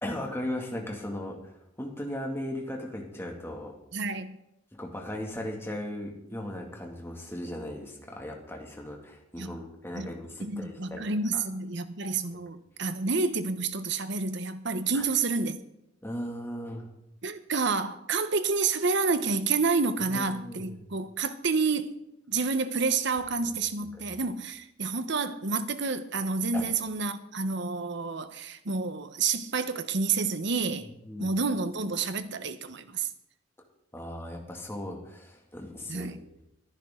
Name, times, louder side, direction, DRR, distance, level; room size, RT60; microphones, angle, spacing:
voice 1, 0.0-3.7 4.7-11.4 14.9-15.1 16.0-16.9 20.0-20.9 23.4-23.5 23.9-24.2 26.5-26.6 30.8-31.4 31.8-31.9 33.9-36.2, left 1 dB, 15° left, 2.3 m, -37 dB
voice 2, 3.9-4.4 9.4-9.6 9.9-10.1 10.4-15.6 17.2-21.9 22.3-30.9 31.2-33.1 35.9-36.2, right 4 dB, 65° right, 1.1 m, -29 dB
22.0 x 10.5 x 3.9 m
head